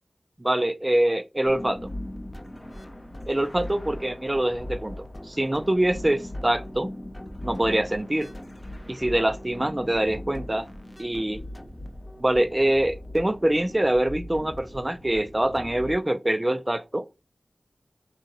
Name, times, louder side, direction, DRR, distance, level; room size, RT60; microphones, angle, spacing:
voice 1, 0.4-1.8 3.3-5.0 5.2-6.9 7.4-8.3 8.9-10.7 11.0-11.5 12.2-17.0, right 1 dB, 25° right, 0.3 m, -24 dB
sound 1, 1.5-15.9, left 1 dB, 25° left, 0.6 m, -39 dB
3.6 x 2.8 x 3.8 m
wide cardioid pair, 50°, 0 cm